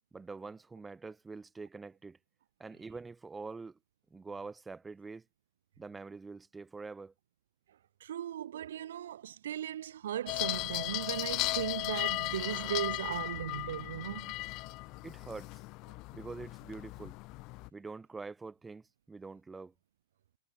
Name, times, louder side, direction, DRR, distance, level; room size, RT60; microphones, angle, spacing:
voice 1, 0.1-2.2 2.6-3.8 4.1-5.2 5.8-7.1 15.0-15.5 16.1-17.2 17.7-19.7, right 4 dB, 10° right, 3.8 m, -45 dB
voice 2, 8.0-14.3, right 11 dB, 80° right, 1.2 m, -37 dB
sound 1, 10.3-17.7, left 23 dB, 35° left, 0.3 m, -36 dB
supercardioid pair, 160°, 0 cm